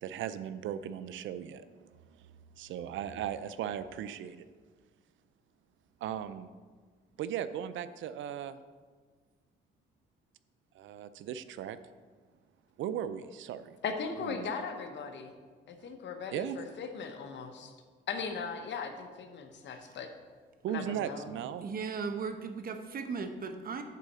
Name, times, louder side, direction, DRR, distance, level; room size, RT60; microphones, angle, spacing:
voice 1, 0.0-1.8 2.1-2.2 2.6-4.5 6.0-6.5 7.2-8.6 10.7-11.8 12.8-13.8 14.2-14.5 16.3-16.6 20.6-21.6, right 9 dB, 75° right, 13 dB, 0.5 m, -37 dB
voice 2, 13.8-15.3 15.7-17.7 18.1-20.1 20.7-21.3, left 5 dB, 65° left, 6 dB, 1.0 m, -38 dB
voice 3, 21.6-23.8, right 5 dB, 50° right, 7 dB, 0.9 m, -37 dB
8.4 x 4.1 x 6.7 m, 1.5 s
cardioid pair, 90°, 20 cm